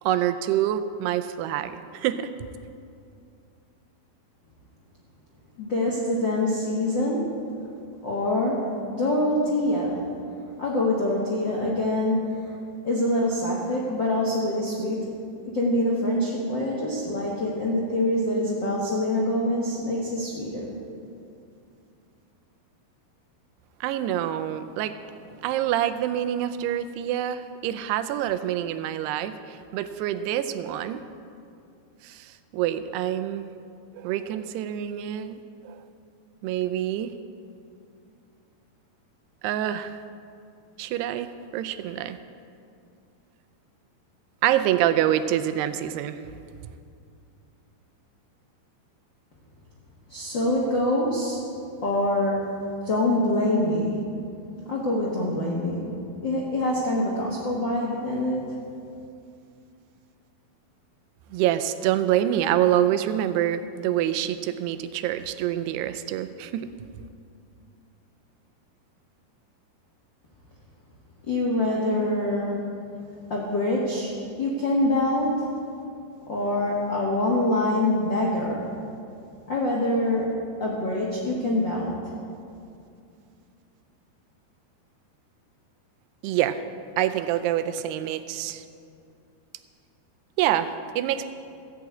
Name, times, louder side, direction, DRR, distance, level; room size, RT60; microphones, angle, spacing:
voice 1, 0.0-2.3 23.8-25.0 25.4-31.0 32.0-33.5 33.9-35.4 35.6-35.8 36.4-37.1 39.4-40.0 40.8-42.2 44.4-46.2 61.3-66.7 86.2-86.6 87.0-88.6 90.4-91.3, right 11 dB, 90° right, 11 dB, 2.6 m, -26 dB
voice 2, 5.6-7.3 8.0-10.0 10.6-12.5 12.8-15.1 15.4-20.7 50.1-51.4 51.8-52.5 52.8-54.0 54.7-58.6 71.3-72.7 73.3-74.1 74.4-75.5 76.3-78.7 79.5-82.1, left 1 dB, 65° left, -5 dB, 1.1 m, -25 dB
15.0 x 6.1 x 8.2 m, 2.4 s
omnidirectional pair, 4.7 m